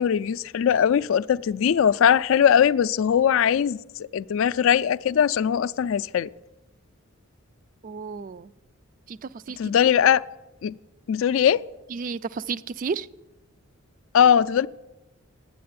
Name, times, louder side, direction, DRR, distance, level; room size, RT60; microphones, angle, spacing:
voice 1, 0.0-3.8 4.1-6.3 9.6-10.2 10.6-10.7 11.1-11.6 14.1-14.7, left 8 dB, 70° left, 0.3 m, -20 dB
voice 2, 7.8-8.5 9.1-9.7 11.9-13.1, right 5 dB, 40° right, 0.3 m, -32 dB
9.3 x 8.3 x 9.5 m
head